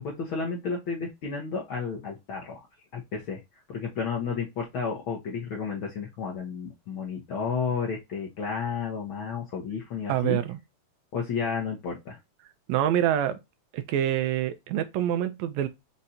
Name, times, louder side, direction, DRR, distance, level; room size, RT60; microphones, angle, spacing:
voice 1, 0.0-2.7 2.9-3.4 3.7-10.4 11.1-12.2, left 5 dB, 65° left, 1.3 m, -32 dB
voice 2, 10.1-10.6 12.7-13.4 13.7-15.7, right 11 dB, 80° right, 1.8 m, -26 dB
5.3 x 2.5 x 4.1 m
omnidirectional pair, 3.3 m